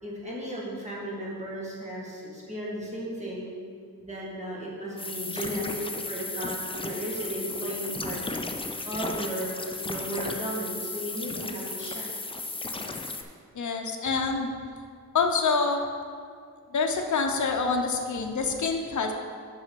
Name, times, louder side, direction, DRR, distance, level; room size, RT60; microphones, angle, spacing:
voice 1, 0.0-3.5 4.0-8.2 8.8-9.6 9.8-12.1, right 1 dB, 20° right, -5 dB, 1.7 m, -35 dB
sound 1, 5.0-13.2, left 3 dB, 15° left, 0.4 m, -35 dB
voice 2, 13.5-14.5 15.1-15.8 16.7-19.1, left 4 dB, 55° left, 3 dB, 0.8 m, -26 dB
6.1 x 5.5 x 6.8 m, 2.1 s
wide cardioid pair, 170°, 36 cm